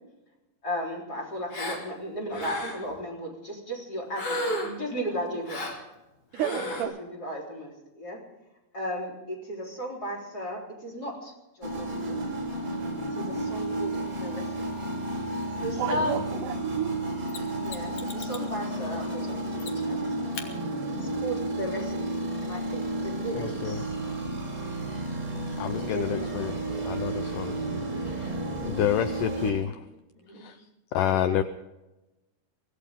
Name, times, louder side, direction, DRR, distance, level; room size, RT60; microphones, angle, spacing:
voice 1, 0.6-5.6 6.6-8.2 8.7-12.2 13.1-14.5 14.8-14.9 15.6-16.1 17.6-20.0 21.0-23.9 25.7-26.3 27.0-27.2 27.9-28.2 30.2-30.5, equal, 25° left, -2 dB, 4.0 m, -35 dB
Gasp, 1.5-1.8 2.3-2.9 4.1-4.8 5.5-5.8 6.3-6.8, equal, 40° left, 2.7 m, -32 dB
voice 2, 6.3-6.9 15.8-17.0 31.1-31.4, right 11 dB, 90° right, 6 dB, 1.8 m, -32 dB
sound 1, 11.6-29.5, right 1 dB, 25° right, 3.3 m, -32 dB
Mechanisms, 17.3-18.5 19.6-20.0 20.3-20.5 23.3-23.4, left 6 dB, 55° left, 2.4 m, -41 dB
voice 3, 23.3-23.8 25.6-26.5 26.9-27.6 28.0-28.3 28.6-29.8 30.4-30.6 30.9-31.4, left 10 dB, 85° left, 11 dB, 1.9 m, -28 dB
24.0 x 16.5 x 3.6 m, 1.0 s
omnidirectional pair, 4.5 m